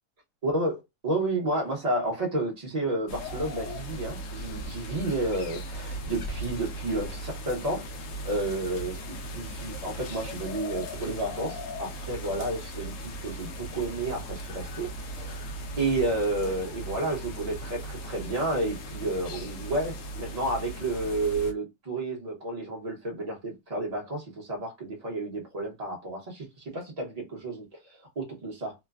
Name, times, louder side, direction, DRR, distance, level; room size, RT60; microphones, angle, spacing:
voice 1, 0.4-15.4 15.8-27.8 28.2-28.7, right 2 dB, 30° right, 0.8 m, -31 dB
sound 1, 3.1-21.5, right 1 dB, 65° left, 0.8 m, -38 dB
3.1 x 2.1 x 2.3 m
omnidirectional pair, 1.9 m